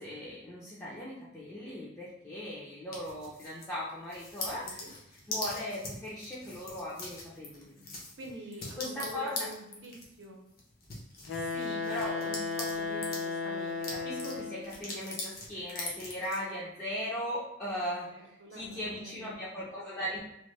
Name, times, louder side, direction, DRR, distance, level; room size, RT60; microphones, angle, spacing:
voice 1, 0.0-4.8 5.3-8.0 8.8-9.5 11.3-20.2, left 1 dB, 15° left, -9 dB, 0.6 m, -39 dB
sound 1, 2.9-3.7 4.1-13.3 13.6-16.4, left 2 dB, 50° left, 0.8 m, -41 dB
voice 2, 4.6-4.9 8.2-10.4 18.1-19.6, right 1 dB, 65° right, 0 dB, 0.7 m, -46 dB
Wind instrument woodwind instrument, 11.3-14.8, left 4 dB, 85° left, 0.4 m, -34 dB
3.0 x 2.1 x 3.1 m, 0.83 s
head